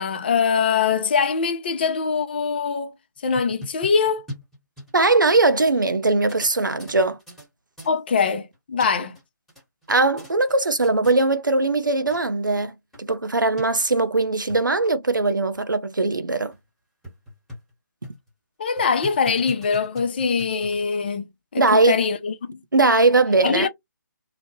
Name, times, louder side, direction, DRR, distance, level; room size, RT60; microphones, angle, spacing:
voice 1, 0.0-2.9 3.2-4.2 7.9-9.2 18.6-21.3 21.5-22.6 23.4-23.7, left 5 dB, 30° left, 0.5 m, -23 dB
sound 1, 3.2-5.4 5.7-5.8 6.2-7.5 7.8-8.0 8.5-9.2 9.5-10.6 10.8-11.2 11.8-11.9 12.1-12.2 12.6-12.7 12.9-13.0 13.6-13.7 14.3-14.6 15.1-15.2 15.5-15.6 16.1-16.2 16.5-16.6 17.0-17.7 18.0-18.3 18.8-20.9, left 1 dB, ahead, 1.1 m, -41 dB
voice 2, 4.9-7.2 9.9-12.7 13.0-16.5 21.6-22.0 22.7-23.7, right 3 dB, 80° right, 0.6 m, -20 dB
2.9 x 2.1 x 2.9 m
figure-of-eight pair, 145°, 10 cm